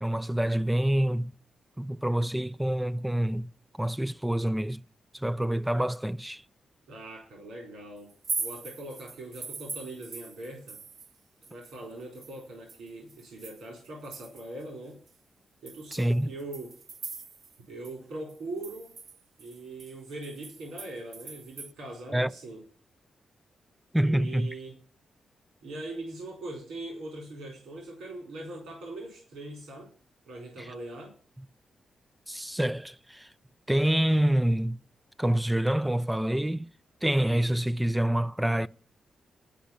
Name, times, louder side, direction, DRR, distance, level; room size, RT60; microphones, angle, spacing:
voice 1, 0.0-1.3 1.8-3.5 3.8-4.8 5.1-6.4 15.9-16.3 22.1-22.3 23.9-24.5 30.6-30.7 32.3-33.3 33.7-34.8 35.2-36.7 37.0-38.7, right 1 dB, 10° right, 0.6 m, -26 dB
voice 2, 6.9-8.1 8.4-10.8 11.5-15.0 15.6-16.7 17.7-18.9 19.4-22.6 24.0-24.7 25.6-29.9 30.3-31.1, right 2 dB, 85° right, 4.1 m, -41 dB
sound 1, 8.1-11.2 11.4-14.6 15.1-15.2 15.7-17.6 17.8-17.9 18.3-21.7, right 4 dB, 60° right, 1.0 m, -41 dB
12.0 x 5.1 x 8.6 m
supercardioid pair, 45°, 0 cm